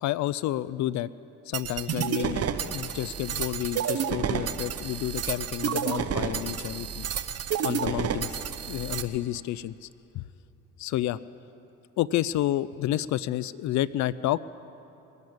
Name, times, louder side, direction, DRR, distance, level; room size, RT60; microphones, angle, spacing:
voice 1, 0.0-1.1 1.5-7.0 7.6-9.9 10.1-10.2 10.8-11.2 12.0-14.4, left 14 dB, 60° left, 19 dB, 0.4 m, -30 dB
sound 1, 1.5-9.0, right 7 dB, 45° right, 0.9 m, -30 dB
20.0 x 8.1 x 8.7 m, 2.8 s
hypercardioid pair, 65°, 33 cm